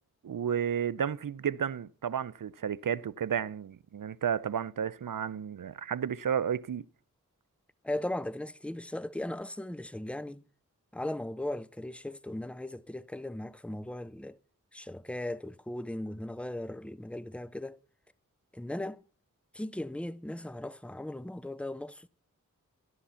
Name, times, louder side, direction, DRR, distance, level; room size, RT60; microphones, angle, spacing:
voice 1, 0.2-6.8, right 8 dB, 80° right, 0.6 m, -32 dB
voice 2, 7.8-10.4 10.9-14.4 14.7-17.8 18.5-19.0 19.5-22.1, left 1 dB, 5° left, 0.6 m, -37 dB
12.5 x 12.0 x 5.6 m
wide cardioid pair, 50°, 32 cm